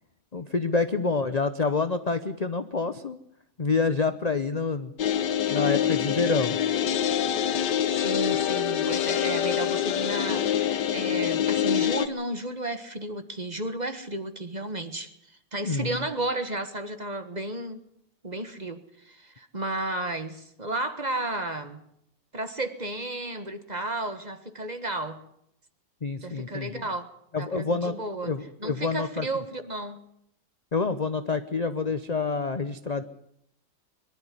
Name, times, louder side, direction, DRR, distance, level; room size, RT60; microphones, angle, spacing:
voice 1, 0.3-3.2 3.6-4.9 5.5-6.6 15.6-15.9 26.0-26.8 27.3-28.0 28.2-29.3 30.7-33.0, left 4 dB, 35° left, 0.6 m, -27 dB
sound 1, 5.0-12.1, left 10 dB, 75° left, 1.6 m, -25 dB
voice 2, 7.9-17.8 18.2-21.8 22.3-25.2 26.2-28.3 28.6-30.0, right 2 dB, 25° right, 1.4 m, -33 dB
23.0 x 12.0 x 9.8 m
omnidirectional pair, 1.8 m